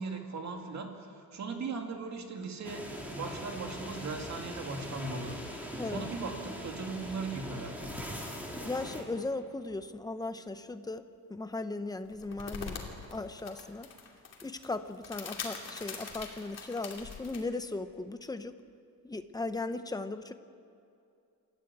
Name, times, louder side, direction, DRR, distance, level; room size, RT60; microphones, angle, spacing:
voice 1, 0.0-5.4 5.8-8.1, right 4 dB, 50° right, 3 dB, 2.5 m, -38 dB
sound 1, 2.6-9.0, equal, 5° right, 3.1 m, -41 dB
voice 2, 8.6-11.0 11.3-12.8 13.1-13.9 14.4-18.5 19.0-20.3, left 2 dB, 10° left, 10 dB, 0.7 m, -37 dB
sound 2, 12.1-17.4, left 5 dB, 45° left, 2.8 m, -43 dB
28.0 x 13.5 x 8.6 m, 2.5 s
wide cardioid pair, 175°, 36 cm